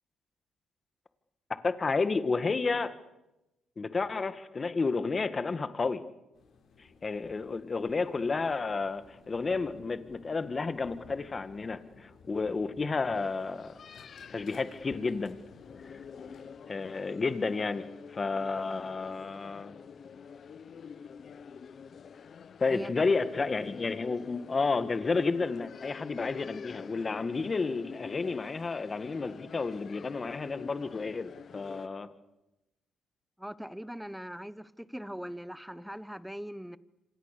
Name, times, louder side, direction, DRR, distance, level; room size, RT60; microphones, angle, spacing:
voice 1, 1.6-2.9 3.8-6.0 7.0-13.7 14.3-15.4 15.8-15.9 16.7-19.7 22.6-32.1, left 4 dB, 30° left, 11 dB, 1.9 m, -31 dB
sound 1, 6.3-16.4, left 4 dB, 70° left, 6.3 m, -56 dB
sound 2, 13.1-31.9, left 6 dB, 50° left, 1.0 m, -47 dB
voice 2, 33.4-36.8, equal, ahead, 16 dB, 1.1 m, -40 dB
27.0 x 26.0 x 6.9 m, 0.98 s
cardioid pair, 90°, 0 cm